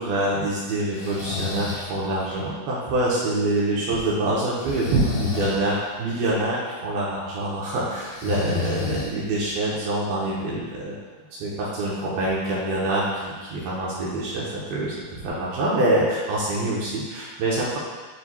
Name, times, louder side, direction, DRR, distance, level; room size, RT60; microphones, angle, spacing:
voice 1, 0.0-11.0 11.4-17.8, right 1 dB, 75° right, -6 dB, 2.4 m, -25 dB
Breathing, 0.9-1.9 4.6-5.6 8.0-9.4, left 4 dB, 85° left, 1.6 m, -30 dB
9.7 x 4.4 x 2.3 m, 1.4 s
omnidirectional pair, 5.0 m